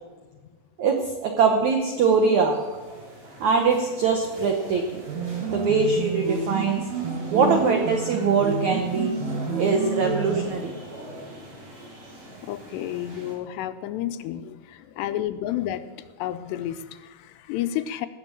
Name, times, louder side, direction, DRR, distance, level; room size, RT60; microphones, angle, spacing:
voice 1, 0.8-2.6 3.4-5.0 5.5-6.8 7.3-9.1 9.6-10.7, right 5 dB, 80° right, 3 dB, 1.7 m, -22 dB
sound 1, 1.9-13.3, right 1 dB, 40° right, 5.1 m, -42 dB
sound 2, 5.1-10.5, right 5 dB, 60° right, 2.0 m, -28 dB
voice 2, 5.2-5.8 7.1-7.3 12.4-18.1, left 12 dB, 80° left, 11 dB, 2.7 m, -31 dB
18.5 x 7.5 x 7.5 m, 1.3 s
omnidirectional pair, 5.0 m